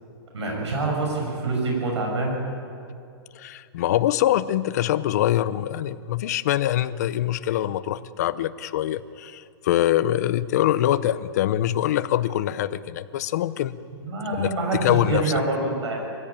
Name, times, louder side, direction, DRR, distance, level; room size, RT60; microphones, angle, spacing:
voice 1, 0.3-2.4 14.0-15.9, right 2 dB, 85° right, -1 dB, 7.7 m, -26 dB
voice 2, 3.3-13.8 14.4-14.5 14.8-15.3, left 12 dB, 35° left, 14 dB, 0.7 m, -24 dB
24.0 x 16.0 x 8.7 m, 2.4 s
hypercardioid pair, 170°, 14 cm